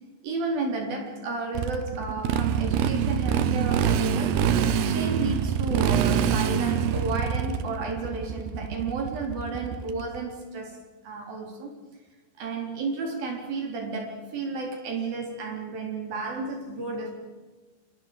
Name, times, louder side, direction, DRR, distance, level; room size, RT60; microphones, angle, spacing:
voice 1, 0.2-4.4 4.8-11.7 12.4-17.2, right 3 dB, 65° right, 2 dB, 5.4 m, -32 dB
Motorcycle, 1.5-10.2, right 8 dB, 90° right, 3.2 m, -25 dB
28.5 x 27.0 x 5.2 m, 1.3 s
omnidirectional pair, 4.6 m